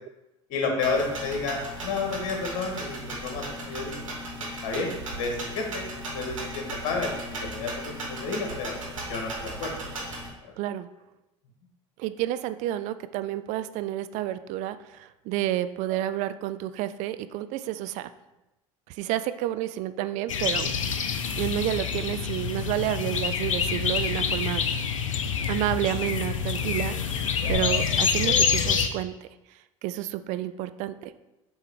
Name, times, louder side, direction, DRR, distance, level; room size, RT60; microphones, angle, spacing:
voice 1, 0.5-4.0 4.6-5.8 6.1-7.1 7.4-8.8 9.1-9.8 10.4-10.5 27.4-27.5, left 4 dB, 50° left, 2 dB, 1.8 m, -31 dB
sound 1, 0.8-10.3, right 1 dB, 75° right, 2.1 m, -36 dB
voice 2, 10.6-10.9 12.0-18.1 19.0-20.7 21.4-24.6 25.5-27.1 27.5-29.1 29.8-31.1, right 13 dB, 45° right, 12 dB, 0.4 m, -30 dB
sound 2, 20.3-28.9, left 6 dB, 75° left, 0.6 m, -26 dB
7.5 x 3.6 x 4.9 m, 0.95 s
figure-of-eight pair, 70°, 17 cm